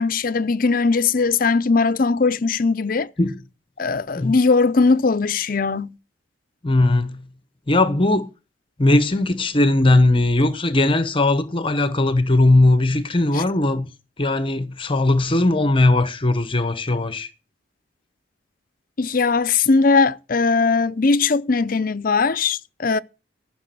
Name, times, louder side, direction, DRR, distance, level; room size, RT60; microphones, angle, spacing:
voice 1, 0.0-3.1 3.8-5.9 13.3-13.4 19.0-23.0, left 4 dB, 50° left, 0.6 m, -19 dB
voice 2, 6.6-7.3 7.7-8.3 8.8-13.9 14.2-17.3, left 2 dB, 30° left, 1.0 m, -18 dB
14.5 x 6.1 x 7.7 m
head